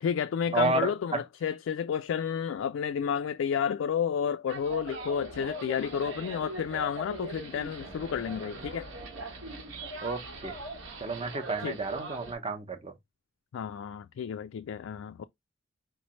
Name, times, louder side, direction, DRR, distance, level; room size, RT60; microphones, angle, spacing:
voice 1, 0.0-8.9 11.6-11.8 13.5-15.2, left 7 dB, 75° left, 0.3 m, -31 dB
voice 2, 0.5-1.2 10.0-10.6 11.0-12.9, right 3 dB, 30° right, 0.8 m, -31 dB
sound 1, 4.5-12.3, right 2 dB, 80° right, 1.4 m, -41 dB
4.6 x 3.1 x 3.0 m
head